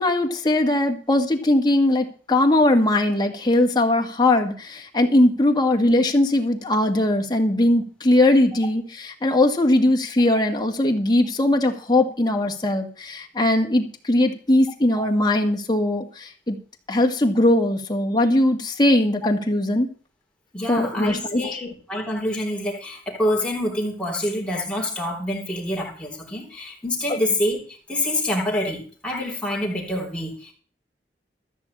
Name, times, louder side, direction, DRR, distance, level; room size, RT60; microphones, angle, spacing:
voice 1, 0.0-16.6 16.9-19.9 20.7-21.4, left 1 dB, 25° left, 1.8 m, -20 dB
voice 2, 20.5-30.5, left 1 dB, 5° left, 3.5 m, -26 dB
14.0 x 5.6 x 8.5 m
head